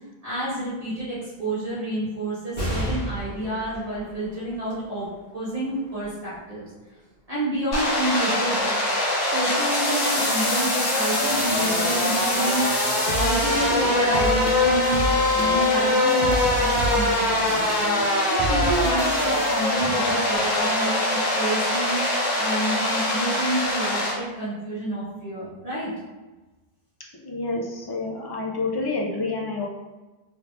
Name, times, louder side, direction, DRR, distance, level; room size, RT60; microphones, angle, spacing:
voice 1, 0.2-5.1 5.3-6.7 7.3-8.8 9.2-12.9 13.1-15.0 15.3-18.0 18.3-22.0 22.4-25.9, right 1 dB, 40° right, -10 dB, 1.2 m, -29 dB
sound 1, 2.5-9.4 10.0-10.1 11.3-11.8, equal, 65° left, 1.7 m, -36 dB
sound 2, 7.7-24.1, left 2 dB, 90° left, 1.2 m, -23 dB
sound 3, 11.2-20.5, right 3 dB, 60° right, 0.7 m, -31 dB
voice 2, 27.2-29.7, left 3 dB, 35° left, -2 dB, 0.4 m, -28 dB
3.4 x 3.3 x 2.4 m, 1.2 s
omnidirectional pair, 1.0 m